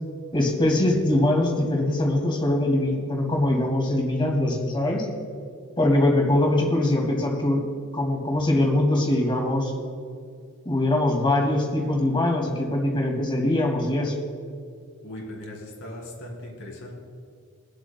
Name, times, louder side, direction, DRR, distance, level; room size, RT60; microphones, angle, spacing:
voice 1, 0.3-5.1 5.8-7.6 7.9-9.7 10.6-14.1, left 1 dB, 25° left, 0 dB, 2.2 m, -22 dB
voice 2, 15.0-16.9, left 1 dB, 60° left, -2 dB, 2.8 m, -38 dB
23.5 x 8.1 x 2.3 m, 2.2 s
head